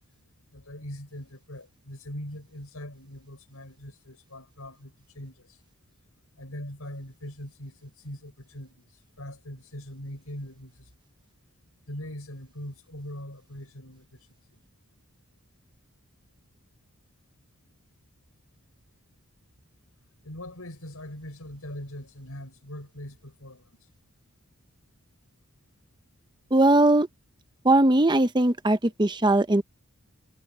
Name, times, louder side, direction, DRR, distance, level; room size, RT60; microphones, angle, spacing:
voice 1, 0.5-5.6 6.4-8.9 9.2-10.9 11.9-14.2 20.2-23.8, left 1 dB, 85° left, 6.4 m, -41 dB
voice 2, 26.5-27.1 27.6-29.6, right 2 dB, 20° right, 0.7 m, -20 dB
head